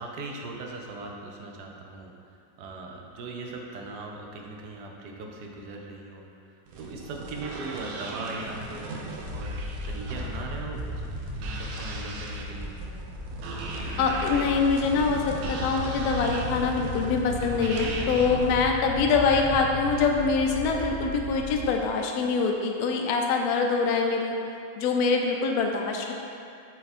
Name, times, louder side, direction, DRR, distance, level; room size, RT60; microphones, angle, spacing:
voice 1, 0.0-11.1 11.4-12.7, right 2 dB, 65° right, 0 dB, 1.1 m, -39 dB
sound 1, 6.7-18.6, right 3 dB, 80° right, 1.5 m, -38 dB
sound 2, 9.2-21.7, left 1 dB, 30° right, 0.4 m, -36 dB
voice 2, 14.0-24.3 24.8-26.1, left 4 dB, 75° left, 2 dB, 0.9 m, -24 dB
6.9 x 4.0 x 4.2 m, 2.5 s
omnidirectional pair, 2.3 m